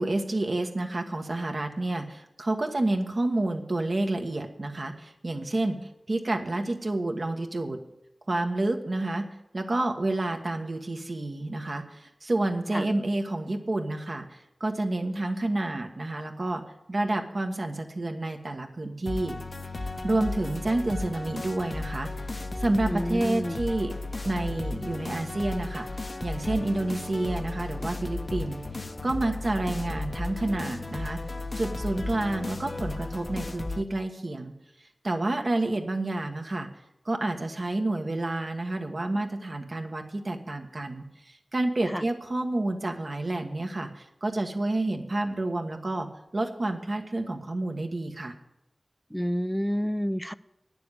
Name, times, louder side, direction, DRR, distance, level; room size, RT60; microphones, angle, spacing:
voice 1, 0.0-7.8 8.3-9.3 9.5-16.6 16.9-19.4 19.8-23.9 24.2-28.6 29.0-31.2 31.5-34.5 35.0-36.7 37.0-46.1 46.3-48.3, right 2 dB, 60° right, 4 dB, 1.3 m, -29 dB
sound 1, 19.1-33.8, left 2 dB, 50° left, 0.7 m, -35 dB
voice 2, 22.9-23.6 41.9-42.0 49.1-50.3, equal, ahead, 15 dB, 0.4 m, -29 dB
9.7 x 6.9 x 8.1 m, 0.89 s
wide cardioid pair, 45°, 0 cm